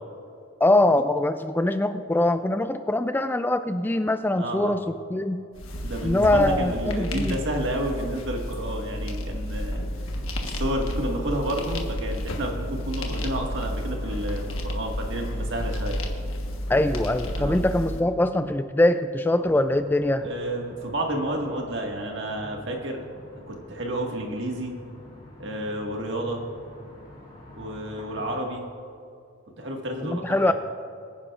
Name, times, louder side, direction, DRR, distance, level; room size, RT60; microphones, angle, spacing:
voice 1, 0.6-4.8 5.1-5.4 6.0-7.4 16.7-20.3 30.0-30.5, left 1 dB, 10° left, 9 dB, 0.3 m, -23 dB
voice 2, 4.4-4.8 5.8-10.0 10.4-16.0 17.4-17.6 20.2-23.0 23.3-24.7 25.4-26.4 27.5-28.6 29.6-30.5, right 1 dB, 60° right, 1 dB, 1.8 m, -30 dB
sound 1, 5.5-18.0, equal, 85° left, 1.3 m, -31 dB
sound 2, 19.4-28.4, left 1 dB, 30° left, 2.3 m, -47 dB
23.5 x 10.0 x 2.5 m, 2.5 s
head